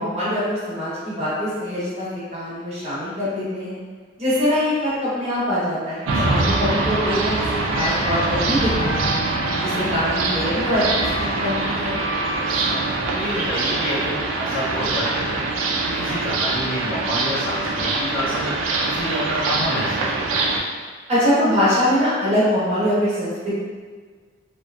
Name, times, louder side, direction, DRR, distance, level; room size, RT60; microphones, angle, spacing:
voice 1, 0.0-3.8 4.2-9.2 9.6-10.8 11.2-12.0 21.1-23.5, equal, 30° right, -10 dB, 0.8 m, -23 dB
sound 1, 6.1-20.6, right 2 dB, 80° right, 0.3 m, -23 dB
voice 2, 12.5-15.5 15.8-18.5 18.8-20.5, equal, 80° left, -11 dB, 1.2 m, -28 dB
2.6 x 2.4 x 2.2 m, 1.5 s
head